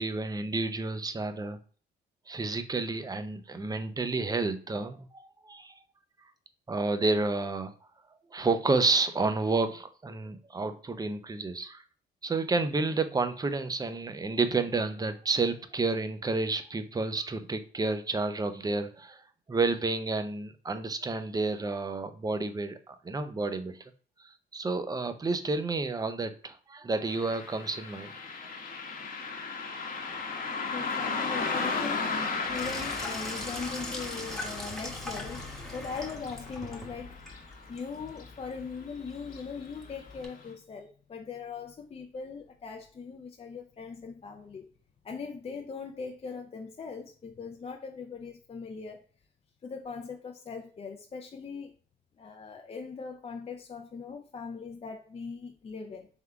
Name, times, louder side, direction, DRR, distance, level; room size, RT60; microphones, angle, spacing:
voice 1, 0.0-1.6 2.3-5.8 6.7-7.7 8.3-11.8 12.2-19.2 19.5-23.8 24.2-28.1, right 3 dB, 20° right, 0.5 m, -30 dB
Car passing by, 27.1-37.9 38.2-38.3 39.2-39.4 39.9-40.0 40.5-40.6, left 4 dB, 45° left, 0.9 m, -35 dB
voice 2, 30.7-32.2 32.5-37.3 37.7-44.7 45.0-49.0 49.6-51.7 52.2-56.1, left 5 dB, 30° left, 0.5 m, -40 dB
Sink (filling or washing), 32.4-40.3, left 1 dB, 5° left, 1.0 m, -41 dB
3.6 x 3.4 x 3.4 m
cardioid pair, 90°, 20 cm